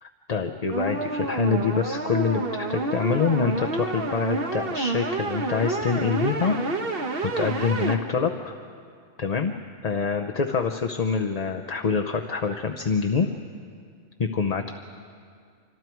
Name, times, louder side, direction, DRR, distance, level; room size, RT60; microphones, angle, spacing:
voice 1, 0.0-6.6 7.4-8.5 9.2-9.5 9.8-13.3 14.2-14.7, left 5 dB, 35° left, 4 dB, 0.7 m, -26 dB
sound 1, 0.7-8.0, right 3 dB, 45° right, 1.5 m, -28 dB
27.0 x 25.0 x 4.6 m, 2.2 s
omnidirectional pair, 1.3 m